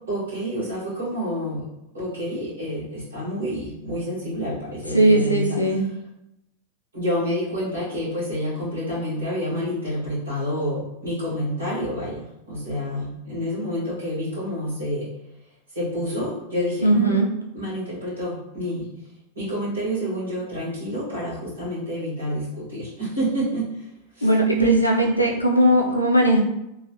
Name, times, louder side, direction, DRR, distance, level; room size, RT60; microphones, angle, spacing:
voice 1, 0.1-1.7 1.9-5.9 6.9-15.1 15.7-17.2 17.5-18.9 19.3-23.9 24.1-25.2, right 1 dB, 65° right, -12 dB, 1.3 m, -28 dB
voice 2, 4.9-5.8 16.8-17.3 24.2-26.4, right 1 dB, 85° left, 0 dB, 0.5 m, -18 dB
3.0 x 2.3 x 2.8 m, 0.86 s
figure-of-eight pair, 90°, 0 cm